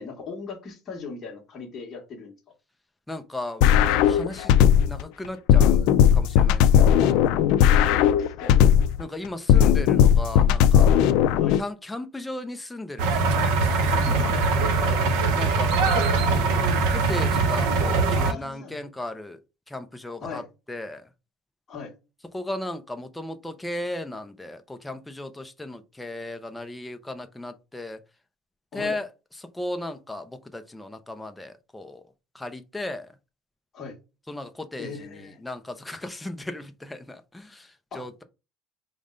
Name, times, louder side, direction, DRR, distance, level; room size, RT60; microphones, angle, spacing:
voice 1, 0.0-2.4 7.0-7.3 7.6-8.6 11.3-11.6 13.9-15.0 18.0-18.8 20.2-20.5 21.7-21.9 28.7-29.0 33.7-34.0 34.8-35.4 37.9-38.1, left 4 dB, 25° left, 1.2 m, -38 dB
voice 2, 3.1-4.5 4.9-7.0 9.0-11.0 11.6-13.7 15.4-16.1 16.9-19.4 19.7-20.4 20.7-21.1 22.3-28.0 28.7-29.1 29.5-32.0 32.3-33.1 34.3-38.2, left 1 dB, 5° left, 0.4 m, -36 dB
sound 1, 3.6-5.0 5.5-9.0 9.5-11.6, left 9 dB, 70° left, 0.3 m, -17 dB
sound 2, 13.0-18.3, right 3 dB, 90° right, 0.7 m, -22 dB
5.1 x 2.1 x 3.7 m
cardioid pair, 175°, 0 cm